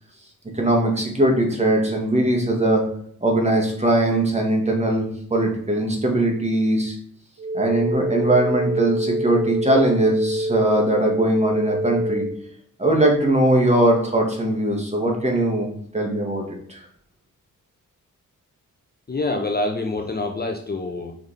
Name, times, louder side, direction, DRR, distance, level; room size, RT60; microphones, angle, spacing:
voice 1, 0.5-2.8 3.2-7.0 7.5-12.3 12.8-16.8, right 1 dB, 20° right, 0 dB, 1.6 m, -20 dB
sound 1, 7.4-12.4, right 1 dB, 55° right, 1.0 m, -25 dB
voice 2, 19.1-21.1, left 2 dB, 30° left, 3 dB, 0.7 m, -26 dB
5.4 x 4.7 x 4.1 m, 0.62 s
wide cardioid pair, 95°, 33 cm